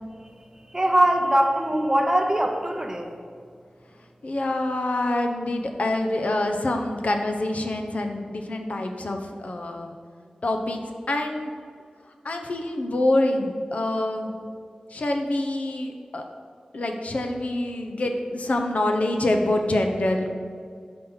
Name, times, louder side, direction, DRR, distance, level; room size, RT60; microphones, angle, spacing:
voice 1, 0.7-3.1, right 1 dB, 20° right, 3 dB, 0.7 m, -21 dB
voice 2, 4.2-10.0 10.4-10.8 11.1-11.5 12.2-14.3 14.9-16.2 16.7-20.3, left 1 dB, 65° left, 4 dB, 0.6 m, -26 dB
5.2 x 4.3 x 5.5 m, 2.2 s
wide cardioid pair, 90°, 3 cm